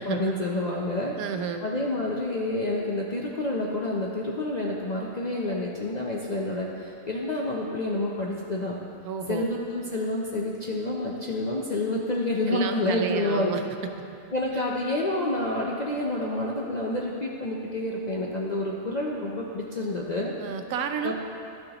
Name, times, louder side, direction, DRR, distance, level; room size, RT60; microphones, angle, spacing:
voice 1, 0.0-1.1 1.6-8.8 9.3-13.5 14.3-20.3 21.0-21.1, left 1 dB, 50° left, -3 dB, 0.5 m, -28 dB
voice 2, 1.2-1.7 9.0-9.5 12.5-13.9 20.4-21.1, right 6 dB, 90° right, 6 dB, 1.1 m, -31 dB
12.0 x 6.5 x 2.9 m, 2.6 s
omnidirectional pair, 1.5 m